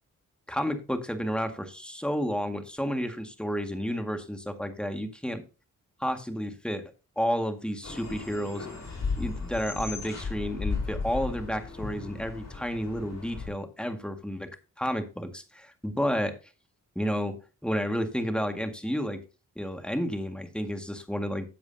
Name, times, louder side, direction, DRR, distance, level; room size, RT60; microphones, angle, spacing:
voice 1, 0.5-5.4 6.0-6.8 7.2-8.7 9.2-14.5 14.8-16.3 17.0-17.4 17.6-19.2 19.6-21.5, equal, 5° left, 6 dB, 1.9 m, -31 dB
sound 1, 7.8-13.5, left 4 dB, 55° left, 4.2 m, -35 dB
13.0 x 7.9 x 2.8 m, 0.32 s
cardioid pair, 75°, 32 cm